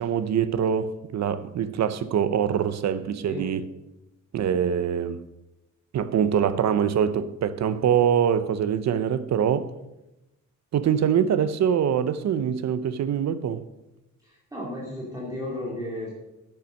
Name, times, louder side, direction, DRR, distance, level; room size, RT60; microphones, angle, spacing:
voice 1, 0.0-3.6 4.3-5.2 5.9-9.7 10.7-13.6, right 8 dB, 60° right, 0.7 m, -24 dB
voice 2, 14.2-16.1, left 1 dB, 10° right, 2.7 m, -34 dB
10.5 x 8.8 x 6.3 m
wide cardioid pair, 180°, 32 cm